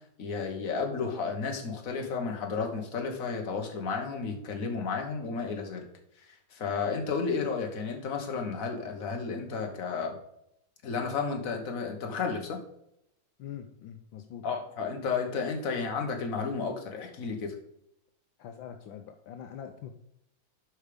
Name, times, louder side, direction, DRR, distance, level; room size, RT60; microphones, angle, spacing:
voice 1, 0.2-5.9 6.3-10.2 10.8-12.6 14.4-17.6, left 5 dB, 45° left, 3 dB, 1.7 m, -32 dB
voice 2, 13.4-14.6 18.4-19.9, left 9 dB, 75° left, 6 dB, 1.4 m, -43 dB
8.3 x 5.6 x 5.1 m, 0.78 s
omnidirectional pair, 2.2 m